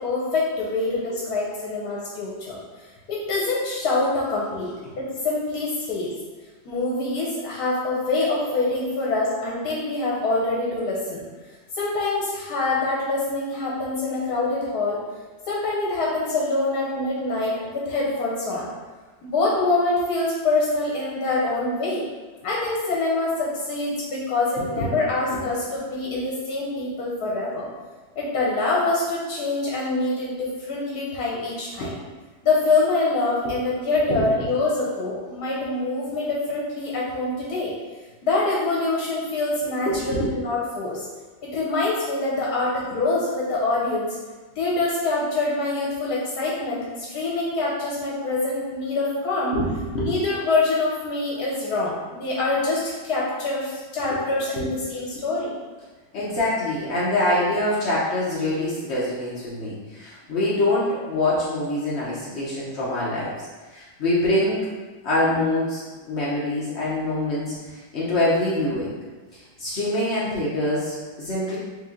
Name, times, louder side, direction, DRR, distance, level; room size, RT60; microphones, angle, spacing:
voice 1, 0.0-6.1 6.7-11.2 11.7-15.0 15.5-18.7 19.2-22.0 22.4-27.6 28.2-32.0 32.4-37.7 38.2-41.1 41.4-44.2 44.6-49.5 50.0-55.5, left 2 dB, 65° left, -6 dB, 1.1 m, -25 dB
voice 2, 39.9-40.3 49.5-50.1 54.5-54.7 56.1-63.3 63.7-64.7 65.0-68.9 69.3-71.6, left 1 dB, 80° left, -8 dB, 0.5 m, -25 dB
3.2 x 2.9 x 3.6 m, 1.3 s
omnidirectional pair, 2.1 m